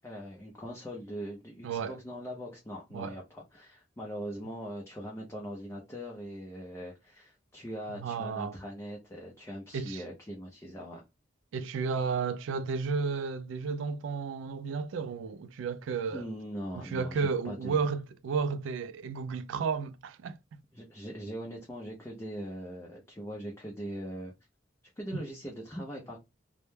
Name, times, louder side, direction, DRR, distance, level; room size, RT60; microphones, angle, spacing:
voice 1, 0.0-11.0 16.1-17.9 20.7-24.3 25.0-26.2, equal, 15° left, 0.4 m, -41 dB
voice 2, 8.0-8.5 9.7-10.0 11.5-16.2 16.8-20.4 25.1-25.2, right 5 dB, 75° right, 0.3 m, -32 dB
2.1 x 2.1 x 3.1 m
head